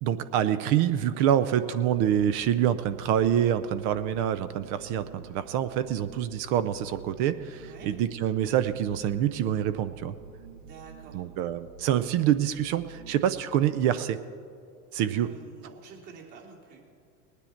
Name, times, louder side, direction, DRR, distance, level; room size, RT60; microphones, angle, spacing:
voice 1, 0.0-10.1 11.1-14.2 14.9-15.3, right 10 dB, 35° right, 13 dB, 0.4 m, -26 dB
sound 1, 1.9-13.4, right 6 dB, 75° right, 1.5 m, -49 dB
voice 2, 10.6-11.2 15.1-16.8, right 6 dB, 50° right, -2 dB, 3.0 m, -49 dB
19.5 x 9.8 x 4.4 m, 2.3 s
hypercardioid pair, 110°, 50 cm